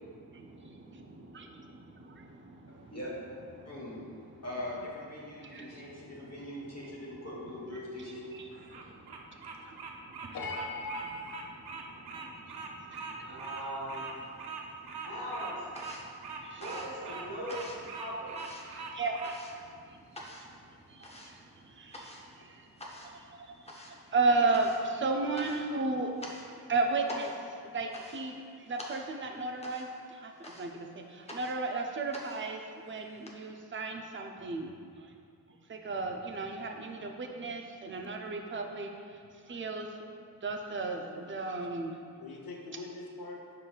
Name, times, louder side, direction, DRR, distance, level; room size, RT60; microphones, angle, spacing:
voice 1, 0.0-3.0 3.6-4.5 5.2-7.3 7.7-7.8 8.3-10.4 11.0-13.5 14.4-15.1 16.0-16.6 18.5-22.7 23.0-26.1 26.4-35.1 35.7-40.1 40.3-42.0, right 3 dB, 30° right, 3 dB, 0.4 m, -36 dB
voice 2, 2.7-3.2 3.6-4.0 4.4-8.3, left 1 dB, 40° left, -5 dB, 1.1 m, -41 dB
Bird vocalization bird call bird song, 8.5-19.4, right 5 dB, 80° right, 0.5 m, -42 dB
voice 3, 10.3-11.4 41.1-41.2 42.2-43.4, left 2 dB, 65° left, 0 dB, 0.7 m, -40 dB
voice 4, 13.3-14.1 15.0-15.6 16.6-18.4, equal, 65° right, -7 dB, 1.4 m, -39 dB
sound 1, 14.0-14.8 15.0-33.3, equal, 15° left, 0.5 m, -48 dB
5.5 x 3.9 x 2.3 m, 2.3 s
wide cardioid pair, 75°, 38 cm